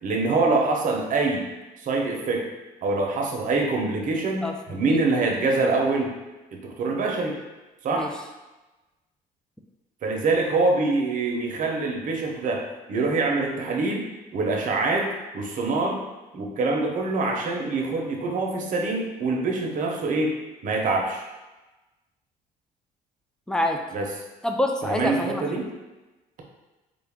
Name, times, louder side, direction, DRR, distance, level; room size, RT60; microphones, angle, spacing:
voice 1, 0.0-1.5 1.8-2.5 2.8-6.1 6.5-7.4 7.8-8.1 10.0-16.0 16.3-20.3 20.6-21.2 23.9-24.1 24.8-25.7, right 3 dB, 50° right, 1 dB, 0.7 m, -25 dB
voice 2, 4.4-5.0 7.9-8.1 23.5-23.8 24.4-25.4, left 1 dB, 5° left, 3 dB, 0.3 m, -26 dB
3.6 x 2.3 x 3.5 m, 1.1 s
cardioid pair, 110°, 17 cm